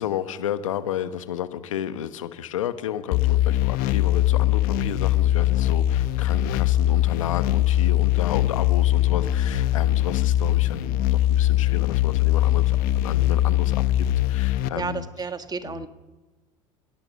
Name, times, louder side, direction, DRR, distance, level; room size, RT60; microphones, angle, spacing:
voice 1, 0.0-15.1 15.6-15.9, left 10 dB, 85° left, 12 dB, 1.2 m, -32 dB
sound 1, 3.1-14.7, left 14 dB, 60° left, 1.0 m, -21 dB
voice 2, 14.7-15.9, right 4 dB, 25° right, 9 dB, 1.6 m, -31 dB
28.0 x 17.0 x 5.4 m, 1.2 s
hypercardioid pair, 75°, 17 cm